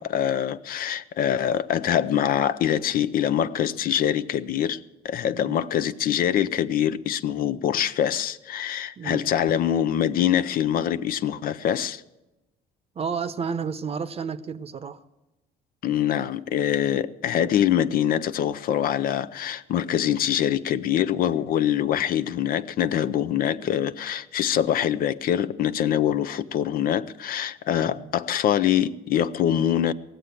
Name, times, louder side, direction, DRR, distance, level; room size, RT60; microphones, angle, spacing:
voice 1, 0.0-12.0 15.8-29.9, left 10 dB, 60° left, 0.6 m, -24 dB
voice 2, 5.3-5.6 9.0-9.3 12.9-15.0 27.9-28.1, right 6 dB, 35° right, 0.8 m, -31 dB
18.5 x 7.7 x 8.3 m
cardioid pair, 110°, 17 cm